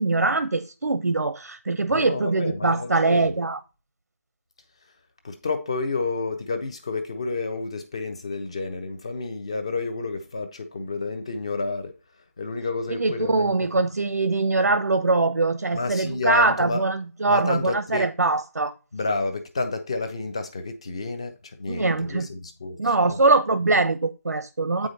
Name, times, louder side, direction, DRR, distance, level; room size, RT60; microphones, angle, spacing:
voice 1, 0.0-3.6 12.9-18.7 21.7-22.3 22.8-24.9, right 3 dB, 90° right, 0.8 m, -22 dB
voice 2, 1.9-3.3 5.2-11.9 12.4-13.6 15.7-16.8 17.3-18.1 18.9-22.8 23.1-23.2, left 3 dB, 20° left, 0.7 m, -30 dB
8.1 x 5.0 x 4.0 m
figure-of-eight pair, 175°, 9 cm